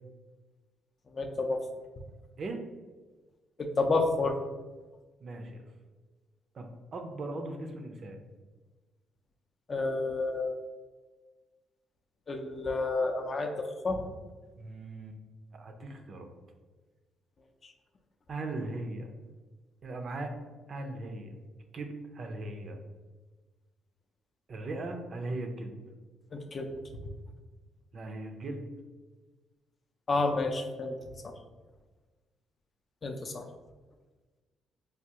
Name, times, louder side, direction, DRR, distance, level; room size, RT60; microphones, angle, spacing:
voice 1, 1.1-1.6 3.6-4.4 9.7-10.6 12.3-14.0 26.3-26.7 30.1-30.9 31.2-31.3 33.0-33.4, left 3 dB, 40° left, 4 dB, 0.4 m, -30 dB
voice 2, 5.2-5.6 6.5-8.2 14.6-15.2 15.5-16.3 18.3-19.1 19.8-20.3 20.7-21.4 21.7-22.8 24.5-25.8 27.9-28.7, right 2 dB, 50° right, 5 dB, 0.4 m, -38 dB
3.4 x 2.3 x 2.8 m, 1.3 s
cardioid pair, 90°, 0 cm